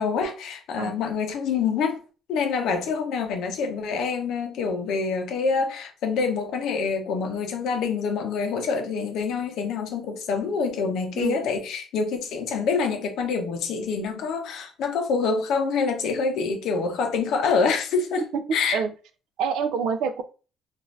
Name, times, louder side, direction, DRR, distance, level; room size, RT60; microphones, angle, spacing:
voice 1, 0.0-2.0 2.3-18.8, left 5 dB, 70° left, 0.6 m, -26 dB
voice 2, 18.3-18.9 19.4-20.2, right 6 dB, 80° right, 0.4 m, -27 dB
2.6 x 2.4 x 3.1 m
cardioid pair, 115°, 0 cm